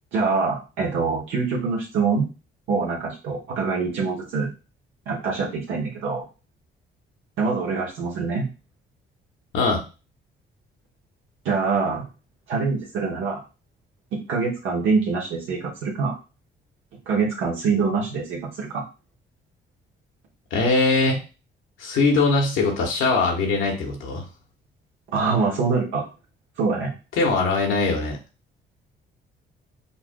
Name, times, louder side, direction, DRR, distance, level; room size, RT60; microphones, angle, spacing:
voice 1, 0.1-2.3 2.7-4.5 5.1-6.2 7.4-8.5 11.4-12.1 12.5-13.4 14.1-16.2 17.1-18.8 25.1-26.0 26.6-26.9, right 4 dB, 85° right, -4 dB, 1.0 m, -24 dB
voice 2, 20.5-21.2 21.8-24.2 27.2-28.2, left 3 dB, 85° left, 1 dB, 1.2 m, -21 dB
5.6 x 2.4 x 2.2 m, 0.32 s
cardioid pair, 90°, 20 cm